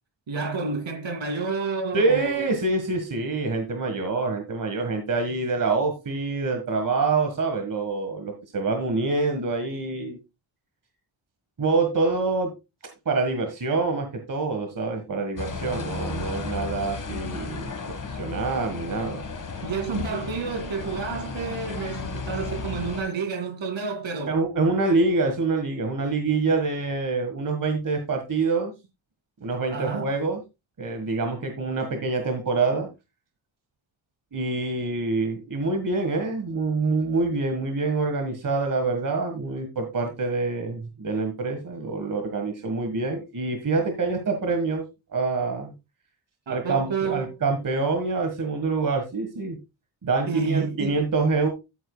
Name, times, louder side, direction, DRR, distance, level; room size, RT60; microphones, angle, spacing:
voice 1, 0.3-2.5 19.6-24.4 29.7-30.1 46.5-47.4 50.3-51.0, right 4 dB, 65° right, 2.5 m, -30 dB
voice 2, 1.9-10.2 11.6-12.5 13.0-17.7 18.0-19.2 24.3-28.7 29.4-30.4 30.8-32.9 34.3-44.8 45.1-45.7 46.5-49.6 50.0-51.5, right 3 dB, 40° right, 1.6 m, -26 dB
sound 1, 15.4-23.0, left 4 dB, 40° left, 1.6 m, -34 dB
14.0 x 8.2 x 2.3 m
wide cardioid pair, 160°, 49 cm